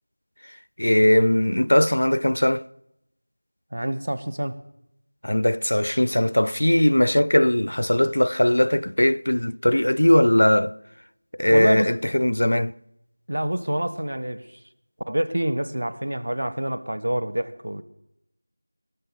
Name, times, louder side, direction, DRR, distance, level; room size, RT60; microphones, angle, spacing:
voice 1, 0.8-2.6 5.2-10.7 11.4-12.7, left 1 dB, 75° left, 0.4 m, -19 dB
voice 2, 3.7-4.6 11.5-11.9 13.3-14.6 15.1-17.8, right 1 dB, 45° right, 0.8 m, -27 dB
17.0 x 6.8 x 7.1 m
figure-of-eight pair, 180°, 0 cm